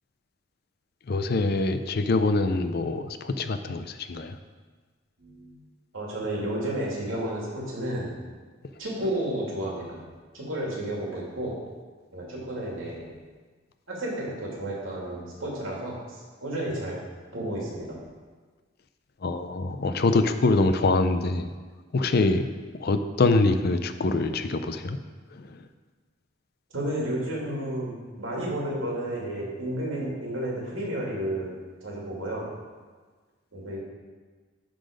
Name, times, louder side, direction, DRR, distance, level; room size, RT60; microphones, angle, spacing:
voice 1, 1.1-4.4 19.2-21.5 21.9-22.5 22.8-25.0 25.3-25.7, left 3 dB, 55° left, 9 dB, 0.5 m, -24 dB
voice 2, 5.2-5.5 5.9-8.2 8.8-10.0 10.3-11.6 12.1-13.1 13.9-17.0 17.3-18.0 26.7-31.5 31.8-32.5 33.5-33.8, right 1 dB, 85° right, -4 dB, 2.5 m, -32 dB
11.5 x 4.0 x 5.1 m, 1.4 s
head